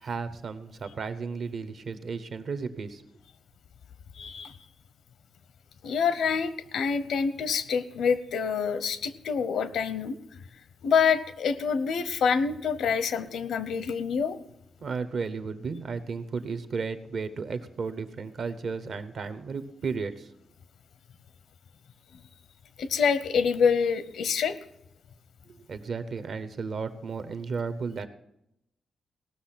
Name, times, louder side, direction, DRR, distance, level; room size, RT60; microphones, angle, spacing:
voice 1, 0.0-3.0 14.8-20.3 25.5-28.1, right 5 dB, 55° right, 11 dB, 0.8 m, -34 dB
voice 2, 4.2-4.6 5.8-10.2 10.8-14.4 22.8-24.6, left 6 dB, 85° left, 14 dB, 0.7 m, -26 dB
18.0 x 6.4 x 5.8 m, 0.83 s
wide cardioid pair, 130°, 0 cm